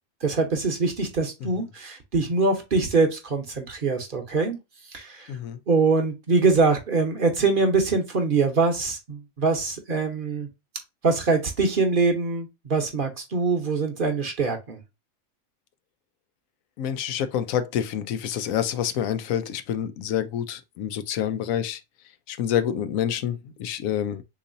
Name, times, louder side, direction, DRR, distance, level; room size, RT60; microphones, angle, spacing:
voice 1, 0.2-4.6 4.9-5.3 5.7-10.5 11.0-14.8, right 4 dB, 45° right, 0.8 m, -23 dB
voice 2, 5.3-5.6 16.8-21.8 22.3-24.2, left 9 dB, 85° left, 1.0 m, -27 dB
3.8 x 3.0 x 2.5 m
omnidirectional pair, 1.4 m